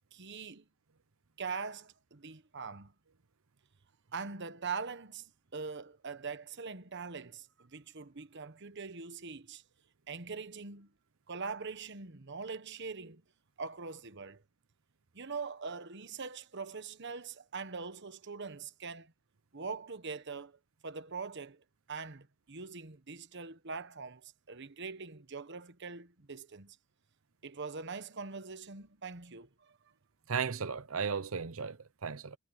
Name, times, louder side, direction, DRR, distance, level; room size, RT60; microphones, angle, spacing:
voice 1, 0.1-0.6 1.4-2.9 4.1-9.6 10.1-10.9 11.3-13.2 13.6-14.4 15.1-19.1 19.5-20.6 20.8-26.8 27.4-29.8, right 4 dB, 55° right, 1.2 m, -42 dB
voice 2, 30.3-32.4, right 6 dB, 70° right, 0.8 m, -35 dB
head